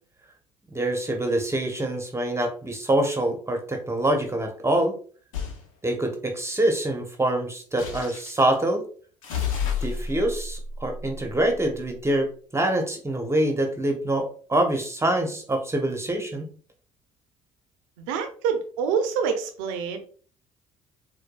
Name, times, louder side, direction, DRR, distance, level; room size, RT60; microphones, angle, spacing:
voice 1, 0.7-5.0 5.8-8.8 9.6-16.5, right 1 dB, 15° right, 3 dB, 0.8 m, -25 dB
sound 1, 5.3-5.6 7.8-8.5 9.2-11.8, left 6 dB, 85° left, 0.6 m, -31 dB
voice 2, 18.1-20.0, right 6 dB, 75° right, 6 dB, 0.6 m, -26 dB
4.5 x 2.2 x 2.2 m, 0.44 s
hypercardioid pair, 55°, 17 cm